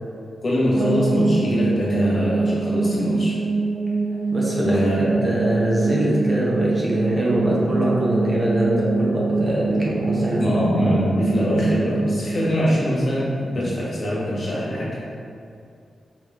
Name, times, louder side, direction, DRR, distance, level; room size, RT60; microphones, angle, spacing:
voice 1, 0.4-3.3 4.5-5.2 10.4-14.9, equal, 40° left, -7 dB, 1.4 m, -23 dB
sound 1, 0.8-13.6, right 3 dB, 70° right, 0.9 m, -24 dB
voice 2, 4.3-10.4 10.7-10.9, right 1 dB, 25° right, -5 dB, 0.8 m, -23 dB
4.7 x 3.1 x 3.5 m, 2.5 s
wide cardioid pair, 120°, 0 cm